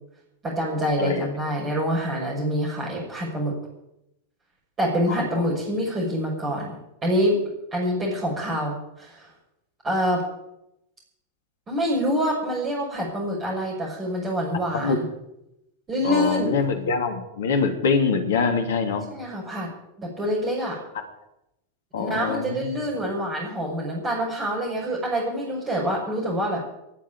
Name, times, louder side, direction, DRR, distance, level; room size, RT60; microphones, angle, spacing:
voice 1, 0.4-3.5 4.8-6.8 7.0-7.4 7.7-9.3 9.8-10.2 11.7-15.0 15.9-16.5 18.9-19.7 20.0-20.8 22.0-26.7, equal, 25° right, -5 dB, 6.3 m, -26 dB
voice 2, 16.0-19.0 21.9-22.6, left 5 dB, 60° left, 5 dB, 3.1 m, -24 dB
19.0 x 7.6 x 9.4 m, 0.86 s
figure-of-eight pair, 90°, 0 cm